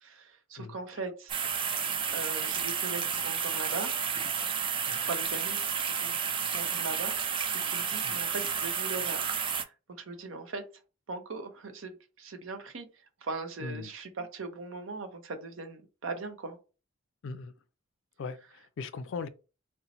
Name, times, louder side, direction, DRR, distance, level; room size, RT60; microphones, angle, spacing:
voice 1, 0.0-1.4 2.1-3.9 5.0-6.1 6.4-9.3 9.6-10.6 11.1-12.9 13.2-16.6, right 3 dB, 70° right, 0.6 m, -40 dB
voice 2, 0.6-1.0 4.9-5.0 8.0-8.2 13.6-13.9 17.2-17.5 18.2-19.3, left 4 dB, 65° left, 0.4 m, -39 dB
sound 1, 1.3-9.6, right 7 dB, 25° right, 0.3 m, -31 dB
2.8 x 2.1 x 4.0 m
head